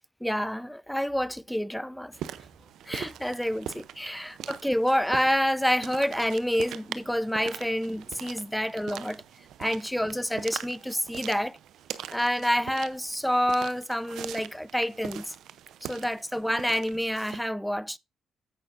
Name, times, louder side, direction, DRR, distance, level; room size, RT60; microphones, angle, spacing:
voice 1, 0.2-2.1 2.9-9.2 9.6-11.6 12.1-15.3 15.8-18.0, equal, ahead, 0.4 m, -28 dB
sound 1, 2.1-17.4, right 10 dB, 80° right, 0.6 m, -42 dB
15.5 x 5.7 x 2.5 m
supercardioid pair, 70°, 0 cm